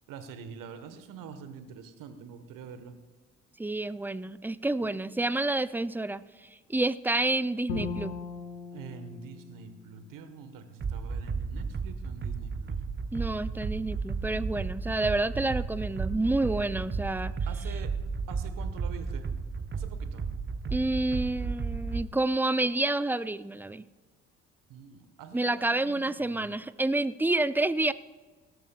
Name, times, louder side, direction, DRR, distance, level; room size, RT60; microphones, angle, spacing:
voice 1, 0.1-3.0 4.8-4.9 8.7-12.8 17.5-17.9 18.3-19.3 19.7-20.2 24.7-26.5, right 6 dB, 65° right, 9 dB, 1.3 m, -45 dB
voice 2, 3.6-6.2 6.7-8.1 13.1-17.4 20.7-23.8 25.3-27.9, right 2 dB, 5° right, 16 dB, 0.5 m, -29 dB
Bowed string instrument, 7.7-10.8, left 5 dB, 85° left, 1.5 m, -39 dB
sound 1, 10.8-22.1, right 5 dB, 30° right, 1.1 m, -33 dB
18.0 x 13.5 x 2.3 m, 1.3 s
hypercardioid pair, 45°, 35 cm